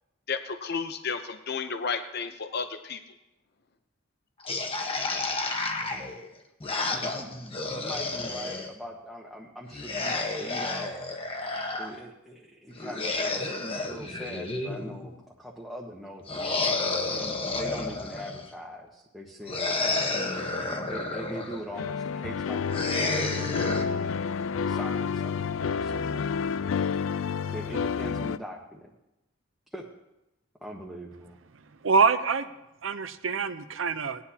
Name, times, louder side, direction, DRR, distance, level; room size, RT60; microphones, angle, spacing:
voice 1, 0.3-3.0, left 5 dB, 55° left, 8 dB, 0.7 m, -32 dB
sound 1, 4.4-8.7 9.7-11.9 12.8-15.1 16.3-18.5 19.5-21.6 22.7-23.8, left 3 dB, 30° left, 1.1 m, -31 dB
voice 2, 6.9-11.1 11.7-16.6 17.1-20.1 20.9-24.2 24.7-26.3 27.5-28.9 29.7-29.8 30.6-31.4, equal, ahead, -3 dB, 1.1 m, -42 dB
sound 2, 21.7-28.4, left 6 dB, 85° left, 0.4 m, -29 dB
voice 3, 31.8-32.5 32.8-34.2, right 5 dB, 80° right, 11 dB, 0.7 m, -25 dB
18.5 x 10.0 x 2.9 m, 0.92 s
head